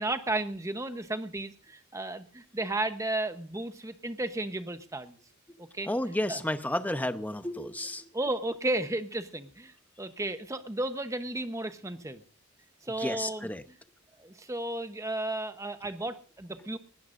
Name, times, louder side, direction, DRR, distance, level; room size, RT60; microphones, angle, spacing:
voice 1, 0.0-5.2 5.6-5.9 6.3-6.4 8.1-12.2 12.8-13.5 14.2-16.8, right 2 dB, 15° right, 9 dB, 0.9 m, -33 dB
voice 2, 5.9-8.1 13.0-13.6, left 1 dB, 5° left, 10 dB, 0.7 m, -31 dB
20.5 x 16.0 x 2.6 m, 0.39 s
head